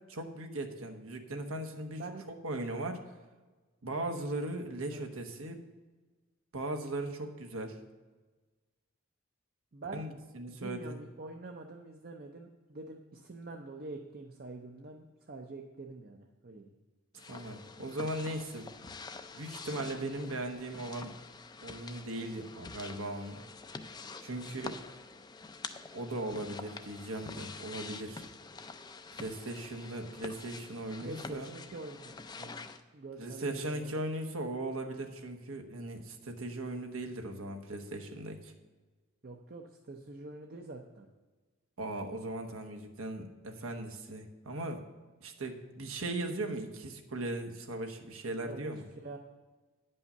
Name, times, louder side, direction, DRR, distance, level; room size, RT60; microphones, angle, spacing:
voice 1, 0.1-2.0 2.3-3.0 3.8-5.6 6.5-7.8 9.9-11.0 17.3-18.7 19.3-21.1 21.6-23.4 24.2-24.8 25.9-28.2 29.1-31.5 33.2-38.5 41.8-44.8 45.2-48.8, right 1 dB, 85° right, 4 dB, 1.2 m, -38 dB
voice 2, 9.7-10.1 10.5-16.7 24.5-24.7 31.0-32.7 32.9-33.8 39.2-41.1 48.4-48.7 49.0-49.2, right 3 dB, 45° right, 2 dB, 0.7 m, -45 dB
sound 1, 17.2-32.8, left 4 dB, 20° left, 0.4 m, -47 dB
9.8 x 5.5 x 6.7 m, 1.3 s
head